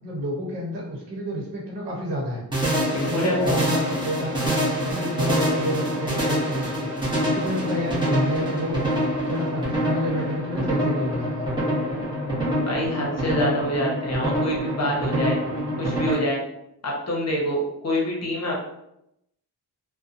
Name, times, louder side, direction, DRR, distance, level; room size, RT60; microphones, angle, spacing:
voice 1, 0.0-2.4 3.1-4.5 4.8-6.9 7.2-8.9 9.3-11.5, equal, 85° right, -3 dB, 0.9 m, -29 dB
sound 1, 2.5-16.1, equal, 10° right, 0.8 m, -25 dB
voice 2, 2.9-3.6 12.6-15.4 15.8-16.4 16.8-18.6, equal, 40° left, -3 dB, 0.8 m, -26 dB
2.6 x 2.2 x 2.5 m, 0.81 s
wide cardioid pair, 110°, 41 cm